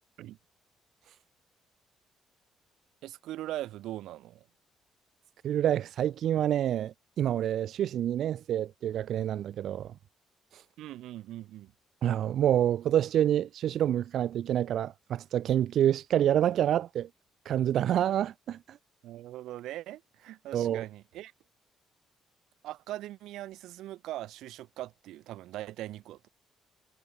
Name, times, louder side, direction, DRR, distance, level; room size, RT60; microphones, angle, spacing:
voice 1, 3.0-4.5 10.8-11.7 19.0-21.3 22.6-26.3, right 14 dB, 90° right, 7.1 m, -41 dB
voice 2, 5.4-9.9 10.5-10.6 12.0-17.1 17.5-18.8 20.5-20.8, right 11 dB, 65° right, 4.1 m, -27 dB
cardioid pair, 130°, 0 cm